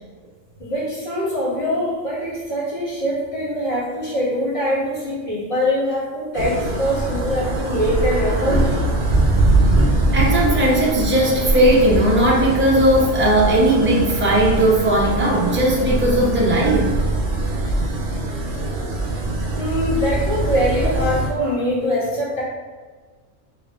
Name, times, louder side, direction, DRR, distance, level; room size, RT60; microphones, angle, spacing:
voice 1, 0.6-8.8 19.6-22.4, equal, 45° left, -9 dB, 1.6 m, -23 dB
sound 1, 6.3-21.3, right 2 dB, 50° right, 0.7 m, -22 dB
voice 2, 10.1-16.9, right 1 dB, 15° right, -4 dB, 0.4 m, -17 dB
4.1 x 3.4 x 2.4 m, 1.4 s
omnidirectional pair, 1.3 m